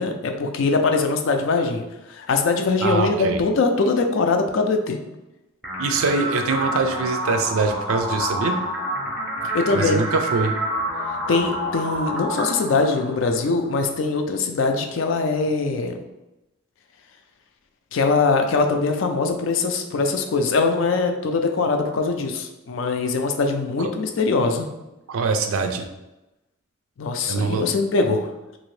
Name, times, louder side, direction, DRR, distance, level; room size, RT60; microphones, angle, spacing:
voice 1, 0.0-5.0 9.4-10.0 11.3-16.0 17.9-24.7 27.0-28.3, left 3 dB, 60° left, 5 dB, 0.4 m, -22 dB
voice 2, 2.8-3.4 5.8-8.6 9.7-10.6 23.8-23.9 25.1-25.9 27.3-27.7, right 4 dB, 75° right, 6 dB, 0.4 m, -23 dB
sound 1, 5.6-13.6, equal, ahead, 0.6 m, -28 dB
2.8 x 2.6 x 3.1 m, 0.97 s
head